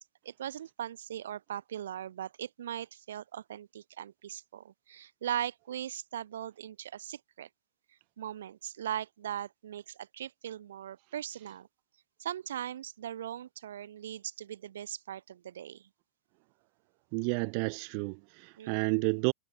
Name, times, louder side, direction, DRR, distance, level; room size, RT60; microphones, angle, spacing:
voice 1, 0.2-7.5 8.2-11.7 12.2-15.9 18.6-19.0, right 10 dB, 80° right, 2.5 m, -39 dB
voice 2, 17.1-19.3, right 40 dB or more, 55° right, 0.6 m, -31 dB
hypercardioid pair, 115°, 0 cm